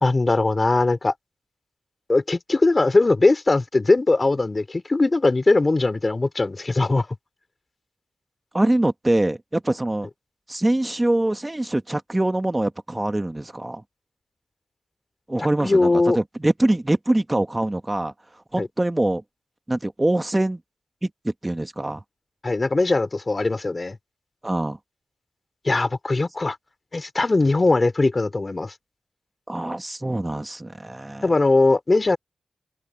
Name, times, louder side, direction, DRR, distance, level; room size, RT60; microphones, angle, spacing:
voice 1, 0.0-1.1 2.1-7.1 15.6-16.2 18.6-18.7 22.4-24.0 25.6-26.6 26.9-28.7 31.2-32.2, left 2 dB, 35° left, 2.8 m, -20 dB
voice 2, 8.5-10.1 10.5-13.8 15.3-18.1 18.5-19.2 19.7-20.6 21.0-22.0 24.4-24.8 29.5-31.3, right 1 dB, 20° right, 1.5 m, -24 dB
open air
cardioid pair, 65°, 0 cm